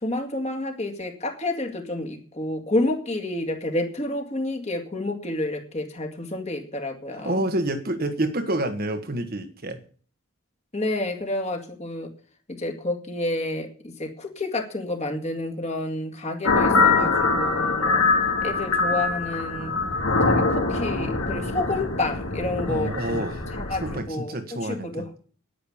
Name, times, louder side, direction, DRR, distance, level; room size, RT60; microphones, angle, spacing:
voice 1, 0.0-7.4 10.7-12.1 12.5-18.1 18.4-19.7 20.2-23.3 23.5-25.1, left 2 dB, 30° left, 2.1 m, -29 dB
voice 2, 7.2-9.8 22.7-25.1, right 1 dB, 45° right, 1.4 m, -28 dB
sound 1, 16.4-24.0, left 3 dB, 90° left, 3.5 m, -23 dB
10.5 x 10.0 x 7.2 m
head